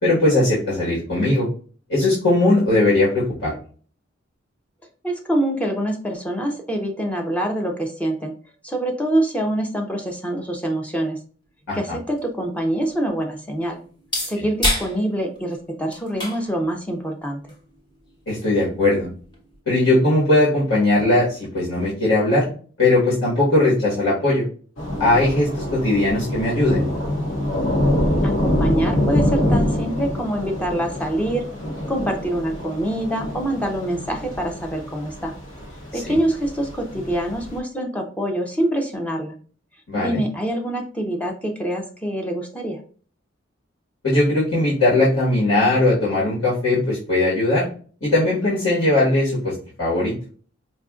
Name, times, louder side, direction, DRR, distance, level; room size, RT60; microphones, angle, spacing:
voice 1, 0.0-1.5 1.9-3.5 11.7-11.8 18.3-19.1 19.7-22.5 22.8-24.4 25.0-26.8 36.1-36.2 39.9-40.2 44.0-47.7 48.0-50.1, left 2 dB, 70° left, -8 dB, 1.4 m, -19 dB
voice 2, 5.0-8.3 8.6-11.2 11.7-13.8 14.3-17.4 28.2-31.5 31.9-35.3 35.9-39.4 39.9-42.8, right 1 dB, 5° left, 3 dB, 0.5 m, -25 dB
sound 1, 11.6-19.6, left 1 dB, 25° left, 1.0 m, -32 dB
Thunder / Rain, 24.8-37.6, left 1 dB, 85° left, 0.9 m, -25 dB
4.8 x 2.5 x 2.4 m, 0.42 s
head